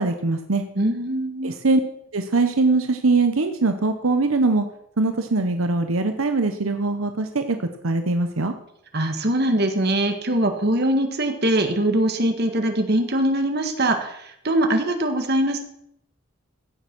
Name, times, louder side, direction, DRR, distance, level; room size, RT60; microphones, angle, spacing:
voice 1, 0.0-0.6 1.4-1.8 2.1-4.7 5.0-7.6 7.8-8.5, right 3 dB, 85° right, 7 dB, 1.0 m, -21 dB
voice 2, 0.8-1.6 8.9-15.6, right 1 dB, 50° right, 6 dB, 1.8 m, -22 dB
16.0 x 7.1 x 6.1 m, 0.75 s
head